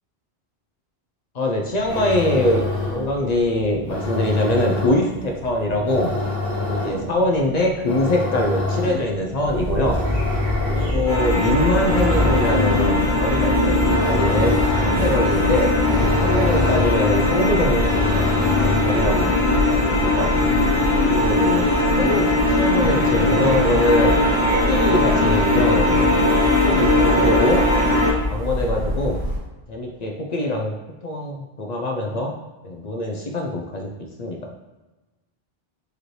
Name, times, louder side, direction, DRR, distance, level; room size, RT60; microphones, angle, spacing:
voice 1, 1.3-6.1 6.6-10.0 10.7-14.6 14.8-15.7 16.1-17.9 18.1-20.5 21.0-21.7 22.0-24.2 24.5-26.4 26.6-27.6 28.1-29.2 29.7-30.7 31.0-32.3 32.6-34.4, left 1 dB, 50° left, 1 dB, 0.5 m, -23 dB
sound 1, 1.7-19.2, left 3 dB, 20° left, 1.0 m, -28 dB
sound 2, 9.4-29.4, equal, 85° right, 1.6 m, -25 dB
sound 3, 11.1-28.1, left 2 dB, 80° left, 1.5 m, -20 dB
4.9 x 3.0 x 3.1 m, 1.1 s
omnidirectional pair, 1.1 m